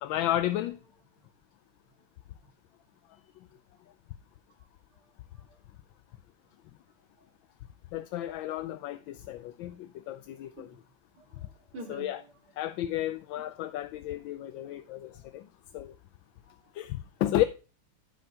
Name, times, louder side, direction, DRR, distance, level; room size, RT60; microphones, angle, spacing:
voice 1, 0.0-0.8 7.9-10.7 11.9-12.2 12.6-15.4 15.7-15.9 16.8-17.4, left 13 dB, 75° left, 1.2 m, -32 dB
voice 2, 11.2-12.3 13.4-13.5 16.4-16.7, equal, 80° right, 3.3 m, -47 dB
14.5 x 5.4 x 2.8 m
omnidirectional pair, 2.3 m